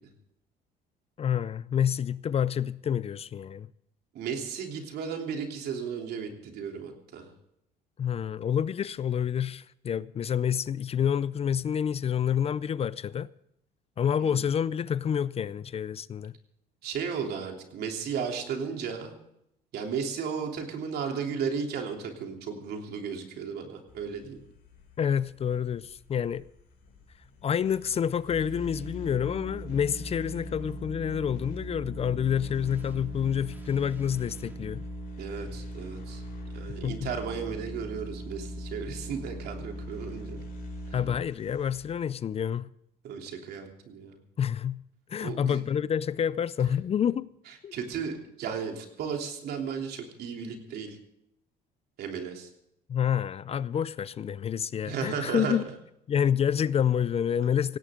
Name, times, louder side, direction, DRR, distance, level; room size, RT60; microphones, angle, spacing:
voice 1, 1.2-3.7 8.0-13.3 14.0-16.3 25.0-26.4 27.4-34.8 36.8-37.1 40.9-42.7 44.4-44.8 45.1-47.3 47.6-47.8 52.9-55.6 56.1-57.8, left 8 dB, 35° left, 0.5 m, -28 dB
voice 2, 4.1-7.3 14.2-14.5 16.8-19.2 19.7-24.4 35.2-36.2 36.5-40.4 43.0-44.2 45.2-45.6 47.7-51.0 52.0-52.5 54.8-55.6, right 6 dB, 70° right, 3.3 m, -34 dB
sound 1, 23.9-41.9, left 7 dB, 60° left, 6.0 m, -53 dB
sound 2, 28.3-41.2, right 1 dB, 10° right, 2.3 m, -40 dB
17.5 x 17.0 x 3.8 m
cardioid pair, 110°, 17 cm